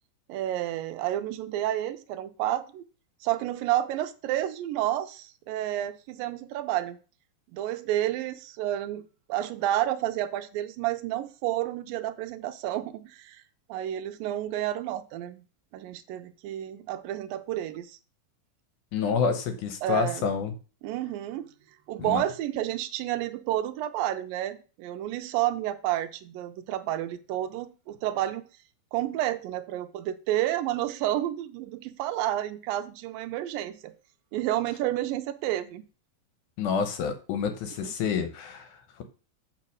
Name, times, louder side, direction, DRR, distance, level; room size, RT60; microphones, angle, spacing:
voice 1, 0.3-2.8 3.2-7.0 7.5-13.4 13.7-15.4 15.7-18.0 19.8-20.3 20.8-21.5 21.9-28.4 28.9-33.9 34.3-35.9 37.8-37.9, right 13 dB, 85° right, 10 dB, 2.3 m, -30 dB
voice 2, 18.9-20.5 22.0-22.2 36.6-39.0, left 6 dB, 70° left, 7 dB, 2.1 m, -28 dB
7.4 x 4.8 x 6.3 m, 0.36 s
omnidirectional pair, 4.0 m